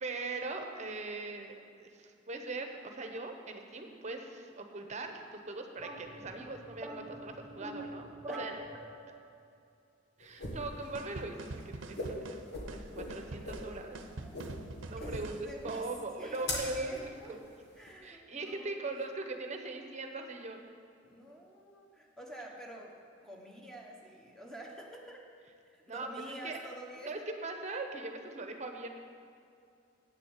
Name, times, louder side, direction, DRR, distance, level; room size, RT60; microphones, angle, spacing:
voice 1, 0.0-8.6 10.2-14.0 14.9-17.5 18.0-20.6 25.8-26.1 26.4-26.6 27.1-28.9, right 3 dB, 40° right, 5 dB, 0.9 m, -40 dB
sound 1, 5.8-9.2, right 1 dB, 20° right, 1.4 m, -44 dB
sound 2, 10.2-17.9, left 1 dB, 60° left, 1.7 m, -42 dB
sound 3, 10.9-15.9, right 2 dB, 90° right, 0.7 m, -45 dB
voice 2, 14.1-14.4 15.0-15.9 16.2-17.4 17.7-19.0 21.0-22.9 23.2-25.2 25.6-27.2, right 1 dB, 5° left, -1 dB, 1.3 m, -48 dB
8.7 x 6.9 x 7.3 m, 2.4 s
head